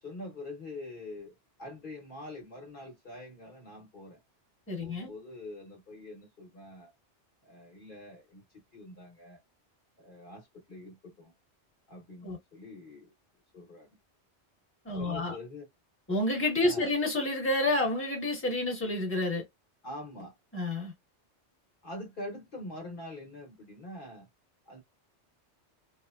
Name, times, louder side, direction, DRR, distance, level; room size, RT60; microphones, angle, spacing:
voice 1, 0.0-4.2 4.8-6.9 7.4-9.4 10.0-11.3 11.9-13.1 13.5-14.0 14.9-15.7 16.6-16.9 19.8-20.4 21.8-24.3 24.7-24.8, left 1 dB, 50° left, 1.1 m, -45 dB
voice 2, 4.7-5.1 12.2-12.4 14.8-15.4 16.1-19.4 20.5-20.9, left 2 dB, 10° left, 1.2 m, -29 dB
3.1 x 2.1 x 2.3 m
omnidirectional pair, 1.1 m